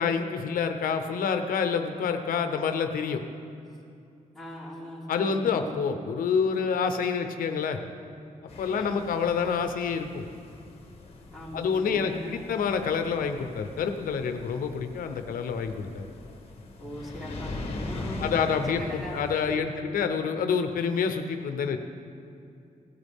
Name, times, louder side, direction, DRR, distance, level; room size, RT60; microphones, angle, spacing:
voice 1, 0.0-3.2 5.1-7.8 8.6-10.2 11.5-16.1 18.2-18.8 19.1-21.8, left 6 dB, 90° left, 7 dB, 0.8 m, -27 dB
voice 2, 4.3-5.8 8.7-9.1 11.3-12.5 16.8-19.9, equal, ahead, -6 dB, 3.7 m, -40 dB
sound 1, 8.5-19.5, left 2 dB, 45° left, 1.6 m, -41 dB
17.0 x 12.5 x 3.6 m, 2.5 s
cardioid pair, 110°, 14 cm